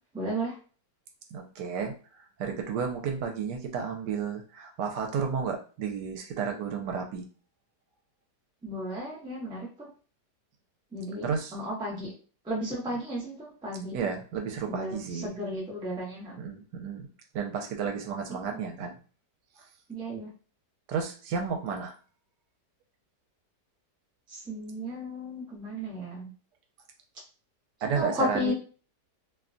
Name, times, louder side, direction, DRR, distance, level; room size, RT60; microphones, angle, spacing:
voice 1, 0.1-0.5 8.6-9.9 10.9-12.1 12.5-14.0 14.7-16.4 18.3-18.4 19.9-20.3 24.3-26.3 27.9-28.5, equal, 5° right, -4 dB, 0.3 m, -34 dB
voice 2, 1.3-1.9 2.4-7.3 11.2-11.5 13.9-15.4 16.4-19.0 20.9-22.0 27.8-28.5, right 6 dB, 80° right, 3 dB, 1.2 m, -32 dB
2.9 x 2.2 x 2.5 m, 0.38 s
omnidirectional pair, 1.8 m